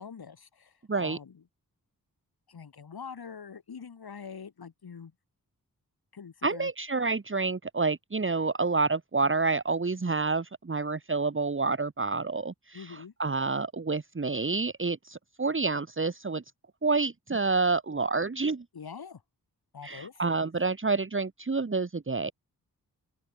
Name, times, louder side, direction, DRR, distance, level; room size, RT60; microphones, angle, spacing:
voice 1, 0.0-1.4 2.5-5.1 6.1-6.7 12.7-13.1 18.7-19.2 19.7-20.2, left 6 dB, 85° left, 5.8 m, -44 dB
voice 2, 6.4-16.4 16.8-18.6 19.8-22.3, right 4 dB, 35° right, 1.6 m, -28 dB
open air
cardioid pair, 60°, 37 cm